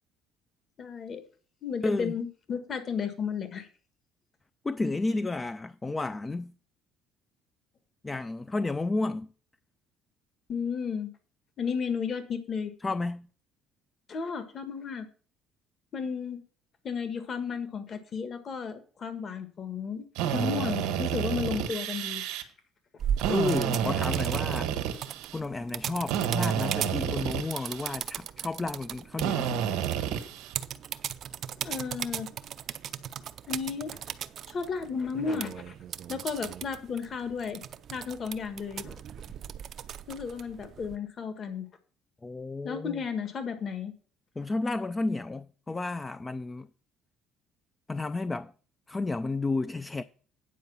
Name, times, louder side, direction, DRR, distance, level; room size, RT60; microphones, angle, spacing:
voice 1, 0.8-1.2 1.6-3.7 10.5-11.1 11.6-12.7 14.1-15.1 15.9-16.4 16.8-22.2 31.6-32.3 33.5-34.0 34.5-35.7 36.1-37.6 37.9-39.0 40.1-41.6 42.6-43.9, left 6 dB, 45° left, 1.5 m, -33 dB
voice 2, 1.8-2.1 4.6-6.5 8.0-9.3 12.8-13.3 23.3-24.7 25.3-29.9 42.2-43.0 44.4-46.7 47.9-48.5 48.9-50.0, left 3 dB, 20° left, 0.4 m, -32 dB
Drill, 20.1-22.4 23.2-25.4 26.1-28.0 29.2-30.5, right 9 dB, 85° right, 1.4 m, -30 dB
sound 1, 23.0-41.0, right 9 dB, 55° right, 0.6 m, -38 dB
9.4 x 4.6 x 6.9 m
cardioid pair, 100°, 0 cm